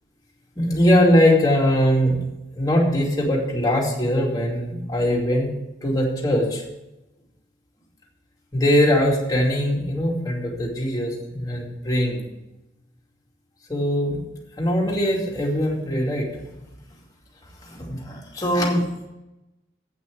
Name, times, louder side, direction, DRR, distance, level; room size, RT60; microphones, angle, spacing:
voice 1, 0.6-2.2 2.6-5.5 5.8-6.6 8.5-12.2 13.7-14.2 14.6-16.3 17.6-18.8, equal, 20° left, -2 dB, 2.4 m, -21 dB
8.5 x 6.1 x 7.7 m, 0.93 s
head